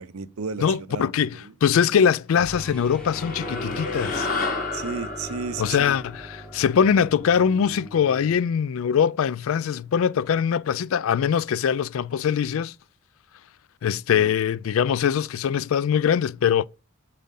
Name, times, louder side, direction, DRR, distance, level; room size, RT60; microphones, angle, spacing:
voice 1, 0.0-1.5 4.7-6.0 14.1-14.3, right 4 dB, 90° right, 0.6 m, -34 dB
voice 2, 0.6-4.3 5.6-12.7 13.8-16.7, left 7 dB, 70° left, 0.3 m, -22 dB
sound 1, 2.3-8.4, equal, 5° left, 0.9 m, -42 dB
sound 2, 2.9-7.5, left 3 dB, 40° left, 1.9 m, -32 dB
7.6 x 4.2 x 3.6 m
head